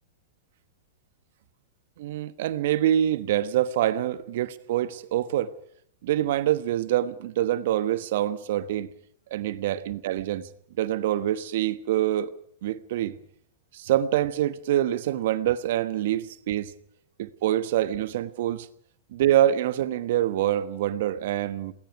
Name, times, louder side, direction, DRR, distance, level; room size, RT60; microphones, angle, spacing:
voice 1, 2.0-5.5 6.0-8.9 9.3-10.5 10.8-12.3 12.6-13.1 13.7-16.7 17.2-18.7 19.1-21.7, right 12 dB, 60° right, 1.3 m, -25 dB
28.5 x 20.0 x 4.8 m
hypercardioid pair, 105°, 0 cm